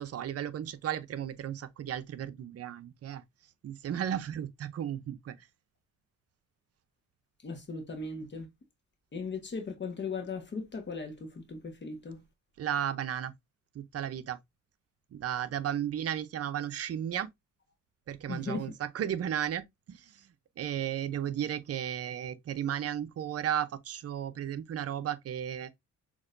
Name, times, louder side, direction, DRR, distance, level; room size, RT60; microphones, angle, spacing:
voice 1, 0.0-3.2 3.6-5.5 12.6-13.3 13.7-14.4 15.1-17.3 18.1-20.3 20.6-25.7, right 10 dB, 50° right, 0.6 m, -34 dB
voice 2, 7.4-8.5 9.1-12.2 18.3-18.7, left 4 dB, 35° left, 1.2 m, -38 dB
6.3 x 2.9 x 2.5 m
cardioid pair, 90°, 30 cm